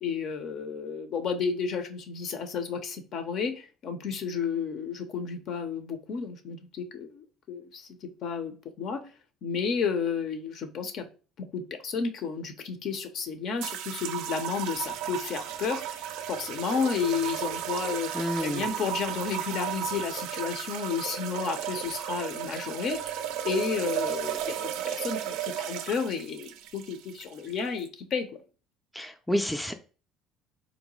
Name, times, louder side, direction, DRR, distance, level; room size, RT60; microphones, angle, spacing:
voice 1, 0.0-9.0 9.4-11.1 11.4-16.0 16.3-18.1 18.4-28.3, left 6 dB, 60° left, 0.6 m, -32 dB
sound 1, 13.6-27.9, right 10 dB, 80° right, 0.3 m, -34 dB
voice 2, 18.1-18.6 28.9-29.7, left 1 dB, 5° left, 0.4 m, -29 dB
3.8 x 2.1 x 3.0 m
supercardioid pair, 95°, 0 cm